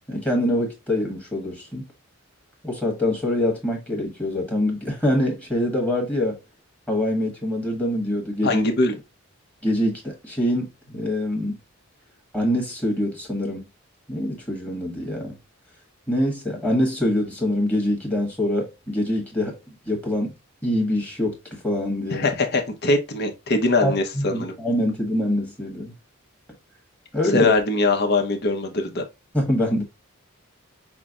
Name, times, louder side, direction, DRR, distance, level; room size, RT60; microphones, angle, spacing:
voice 1, 0.1-1.8 2.6-6.4 6.9-8.7 9.6-11.6 12.3-13.6 14.1-15.3 16.1-19.5 19.9-20.3 20.6-21.4 21.6-22.2 23.8-25.9 27.1-27.5 29.3-29.8, left 1 dB, 5° left, 1.3 m, -24 dB
voice 2, 8.4-9.0 22.1-24.6 27.3-29.0, left 2 dB, 45° left, 0.9 m, -22 dB
5.8 x 2.2 x 3.6 m
head